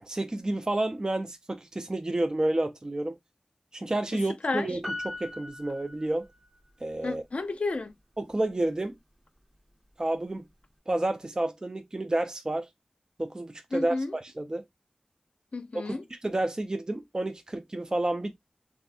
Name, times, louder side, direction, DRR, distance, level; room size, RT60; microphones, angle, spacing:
voice 1, 0.0-3.2 3.7-6.3 6.8-7.2 8.2-9.0 10.0-10.4 10.9-12.7 13.2-14.6 15.9-18.5, right 1 dB, 30° right, 0.4 m, -30 dB
voice 2, 4.1-4.7 7.0-7.9 13.7-14.1 15.5-16.0, left 3 dB, 65° left, 0.5 m, -32 dB
Piano, 4.8-6.6 6.9-7.0, left 2 dB, 10° right, 1.6 m, -39 dB
3.4 x 2.5 x 2.5 m
wide cardioid pair, 75°, 2 cm